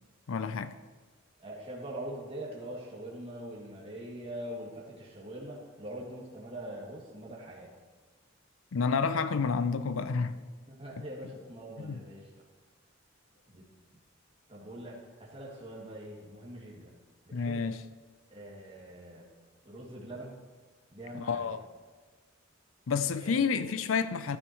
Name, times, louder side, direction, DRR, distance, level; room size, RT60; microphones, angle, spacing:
voice 1, 0.3-0.7 8.7-10.4 11.0-11.1 11.8-12.0 17.3-17.8 21.1-21.6 22.9-24.4, left 5 dB, 80° left, 0.5 m, -29 dB
voice 2, 1.4-7.7 10.3-12.3 13.5-13.7 14.5-17.0 17.3-17.6 18.3-19.3 19.6-20.3 20.9-21.6 23.2-23.7, right 1 dB, 30° right, 2.3 m, -43 dB
14.5 x 13.0 x 3.1 m
head